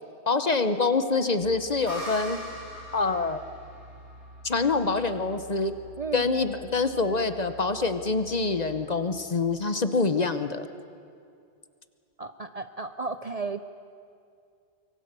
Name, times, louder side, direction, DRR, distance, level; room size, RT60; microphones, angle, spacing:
voice 1, 0.3-2.4 2.9-3.4 4.4-5.7 6.1-10.7, left 4 dB, 40° left, 10 dB, 0.9 m, -25 dB
sound 1, 1.4-8.9, equal, 85° right, 4.3 m, -49 dB
sound 2, 1.9-5.4, equal, 80° left, 6.1 m, -41 dB
voice 2, 6.0-6.3 12.2-13.7, right 4 dB, 40° right, 10 dB, 0.6 m, -34 dB
24.5 x 23.5 x 6.8 m, 2.4 s
omnidirectional pair, 1.1 m